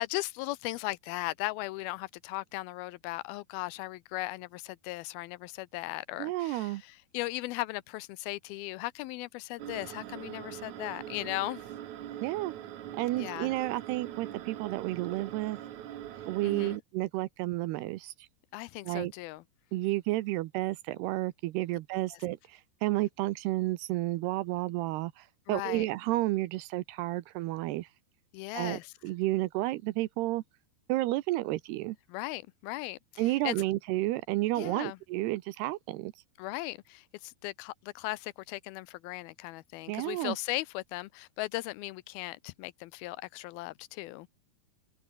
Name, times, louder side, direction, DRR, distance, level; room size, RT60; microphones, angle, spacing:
voice 1, 0.0-11.6 13.2-13.5 16.4-16.8 18.5-19.4 25.5-25.9 28.3-28.9 32.1-33.0 33.3-33.6 34.5-35.0 36.4-44.3, left 19 dB, 80° left, 2.4 m, -37 dB
voice 2, 6.2-6.8 12.2-12.6 13.0-15.6 16.3-18.3 18.8-19.1 19.7-27.9 28.5-30.4 30.9-32.0 33.2-36.1 39.9-40.4, right 17 dB, 85° right, 2.9 m, -31 dB
sound 1, 9.6-16.8, right 11 dB, 60° right, 2.2 m, -43 dB
open air
omnidirectional pair, 4.6 m